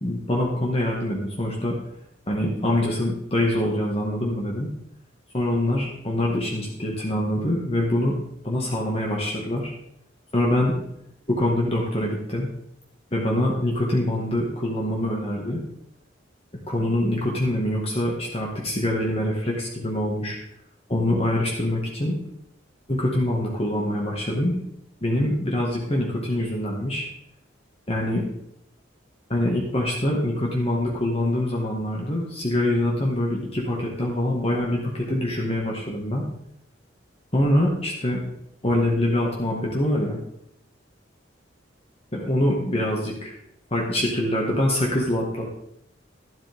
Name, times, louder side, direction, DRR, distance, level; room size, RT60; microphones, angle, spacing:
voice 1, 0.0-1.8 2.3-4.7 5.3-8.2 8.4-9.7 10.3-10.7 11.3-12.5 13.1-15.6 16.7-20.4 20.9-22.2 22.9-24.5 25.0-27.1 27.9-28.2 29.3-36.3 37.3-38.2 38.6-40.2 42.1-43.3 43.7-45.6, left 1 dB, 30° left, -2 dB, 1.9 m, -24 dB
12.5 x 11.5 x 3.6 m, 0.76 s
head